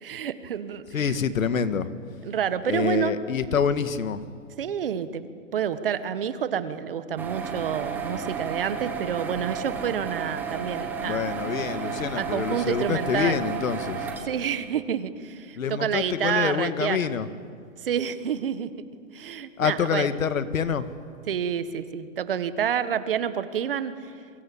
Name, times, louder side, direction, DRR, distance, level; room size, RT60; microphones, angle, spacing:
voice 1, 0.0-1.1 2.2-3.2 4.6-5.3 5.5-11.4 12.2-13.4 14.2-17.1 17.8-18.7 19.1-20.1 21.3-24.1, right 8 dB, 45° right, 12 dB, 1.5 m, -28 dB
voice 2, 0.9-1.9 2.7-4.2 11.0-14.1 15.6-17.3 19.6-20.9, left 7 dB, 80° left, 11 dB, 2.0 m, -26 dB
sound 1, 7.2-14.2, right 6 dB, 5° right, 1.2 m, -33 dB
28.5 x 24.0 x 8.6 m, 2.2 s
hypercardioid pair, 175°, 40 cm